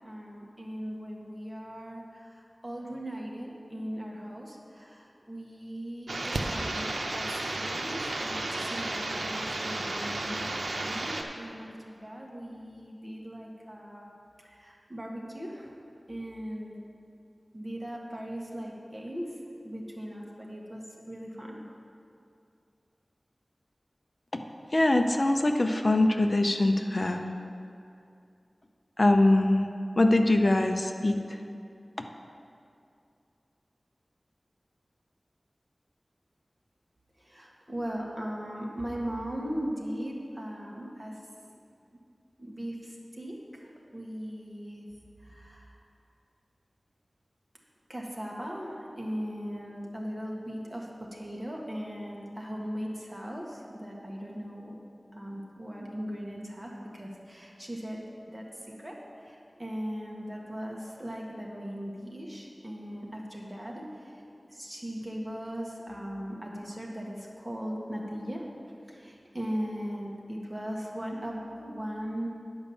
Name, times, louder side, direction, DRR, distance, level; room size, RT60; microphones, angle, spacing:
voice 1, 0.0-10.5 10.7-14.1 14.4-15.7 16.1-16.7 17.5-19.4 19.6-21.6 37.2-41.2 42.4-44.8 45.2-45.7 47.9-54.8 55.1-58.0 58.3-58.5 58.8-64.1 64.5-68.4 68.9-72.3, equal, 15° right, -2 dB, 1.7 m, -38 dB
sound 1, 6.1-11.2, right 2 dB, 90° right, 0.7 m, -33 dB
voice 2, 24.7-27.3 29.0-29.7 30.0-31.4 32.0-32.1, left 1 dB, 45° left, 5 dB, 0.7 m, -23 dB
9.9 x 5.2 x 7.2 m, 2.5 s
wide cardioid pair, 65°, 0 cm